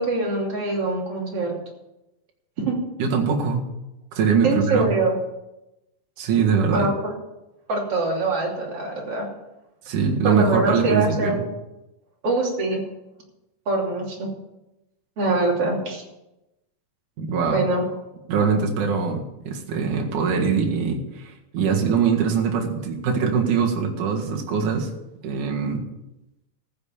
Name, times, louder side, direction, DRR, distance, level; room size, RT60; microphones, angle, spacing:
voice 1, 0.0-1.5 2.6-2.8 4.4-5.1 6.7-7.1 7.7-9.3 10.2-11.5 12.2-12.8 13.7-14.3 15.2-16.0 17.5-17.9, right 2 dB, 40° right, -2 dB, 3.6 m, -23 dB
voice 2, 3.0-3.6 4.1-4.9 6.2-6.9 9.8-11.4 17.2-17.7 18.3-24.9 25.2-25.8, right 6 dB, 60° right, 0 dB, 3.1 m, -22 dB
14.5 x 6.7 x 7.2 m, 0.95 s
omnidirectional pair, 4.2 m